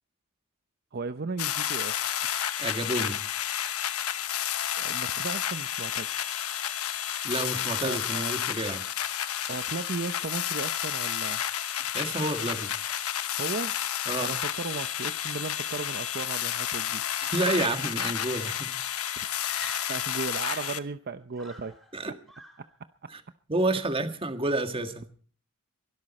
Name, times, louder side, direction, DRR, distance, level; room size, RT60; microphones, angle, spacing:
voice 1, 0.9-2.0 4.8-6.1 7.8-8.4 9.5-11.4 13.4-13.8 14.2-17.0 19.9-21.8 22.0-22.1 22.6-22.7 23.0-23.1, right 4 dB, 50° right, 10 dB, 0.7 m, -36 dB
sound 1, 1.4-20.8, left 10 dB, 85° left, 1.0 m, -31 dB
voice 2, 2.6-3.2 7.2-8.8 11.9-12.7 14.1-14.3 17.2-18.7 21.9-22.1 23.1-23.2 23.5-25.1, right 2 dB, 25° right, 7 dB, 1.7 m, -29 dB
Screaming, 19.4-20.8 21.3-22.0 22.3-22.7, left 1 dB, ahead, 5.3 m, -46 dB
23.0 x 12.5 x 4.2 m, 0.43 s
head